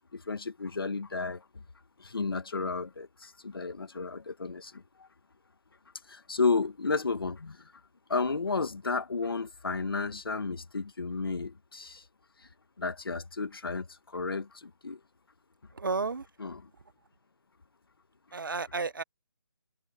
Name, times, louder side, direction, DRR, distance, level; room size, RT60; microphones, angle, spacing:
voice 1, 0.1-1.4 2.0-4.8 6.1-7.7 8.1-12.0 12.8-15.0 16.4-16.6, left 4 dB, 60° left, 1.9 m, -32 dB
voice 2, 15.7-16.3 18.3-19.0, right 4 dB, 55° right, 1.2 m, -32 dB
hypercardioid pair, 180°, 14 cm